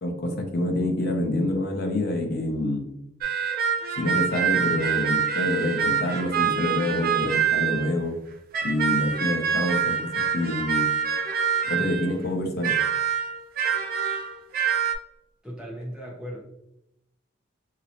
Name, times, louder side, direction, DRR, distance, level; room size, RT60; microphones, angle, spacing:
voice 1, 0.0-2.9 4.0-8.1 8.6-10.9 11.7-12.8, left 1 dB, 50° left, 3 dB, 0.6 m, -27 dB
sound 1, 3.2-7.9 8.5-12.1 12.6-14.9, right 7 dB, 45° right, 0.4 m, -25 dB
voice 2, 15.4-16.4, equal, 5° right, -5 dB, 0.9 m, -37 dB
3.0 x 2.9 x 2.8 m, 0.83 s
head